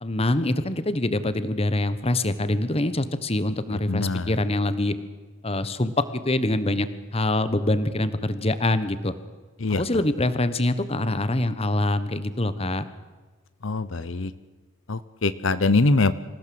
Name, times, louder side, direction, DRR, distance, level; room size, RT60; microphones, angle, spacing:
voice 1, 0.0-4.9 5.4-6.9 7.1-9.1 9.7-12.8, left 1 dB, 30° left, 13 dB, 1.2 m, -24 dB
voice 2, 3.9-4.3 9.6-9.8 13.6-14.3 14.9-16.1, left 3 dB, 75° left, 14 dB, 0.9 m, -23 dB
26.5 x 16.0 x 7.8 m, 1.3 s
head